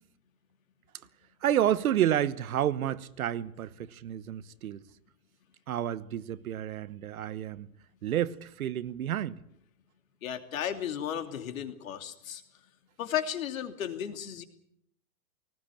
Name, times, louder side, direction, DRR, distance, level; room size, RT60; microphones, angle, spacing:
voice 1, 1.4-4.8 5.7-7.7 8.0-9.4, right 11 dB, 65° right, 1.2 m, -30 dB
voice 2, 10.2-12.4 13.0-14.4, left 9 dB, 60° left, 2.9 m, -34 dB
19.0 x 18.5 x 8.7 m
hypercardioid pair, 160°, 46 cm